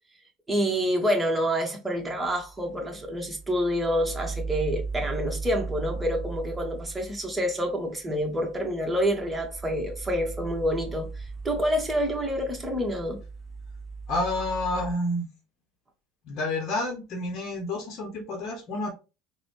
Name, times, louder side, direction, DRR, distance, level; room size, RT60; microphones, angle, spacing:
voice 1, 0.5-13.2, equal, 15° right, 1.3 m, -27 dB
sound 1, 2.0-14.9, right 4 dB, 10° left, 1.7 m, -38 dB
voice 2, 14.1-15.3 16.3-18.9, left 2 dB, 50° left, 0.9 m, -29 dB
3.8 x 2.3 x 3.2 m
hypercardioid pair, 75°, 0 cm